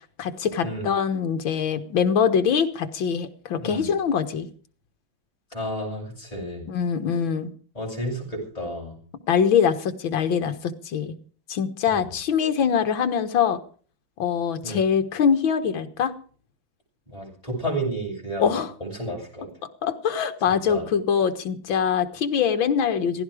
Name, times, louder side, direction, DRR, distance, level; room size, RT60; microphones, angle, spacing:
voice 1, 0.2-4.5 6.7-7.5 9.3-11.2 11.5-13.6 14.2-16.1 18.4-18.7 19.8-23.2, left 7 dB, 70° left, 8 dB, 2.2 m, -23 dB
voice 2, 5.5-6.7 7.7-9.0 11.8-12.1 14.6-14.9 17.1-19.5 20.5-20.8, right 1 dB, 15° left, -3 dB, 7.1 m, -32 dB
16.0 x 16.0 x 5.0 m, 0.42 s
omnidirectional pair, 2.2 m